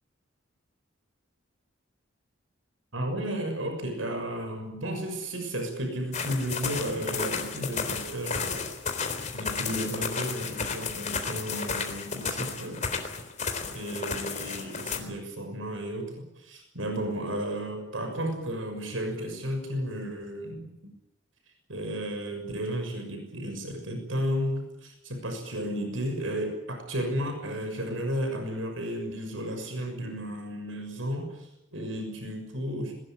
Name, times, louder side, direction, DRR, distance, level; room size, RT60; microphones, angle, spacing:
voice 1, 2.9-8.7 9.3-12.8 13.7-20.9 21.7-32.9, equal, 85° right, 5 dB, 6.4 m, -33 dB
sound 1, 6.1-15.0, left 5 dB, 40° left, 3.8 m, -33 dB
21.5 x 20.5 x 9.1 m, 0.87 s
head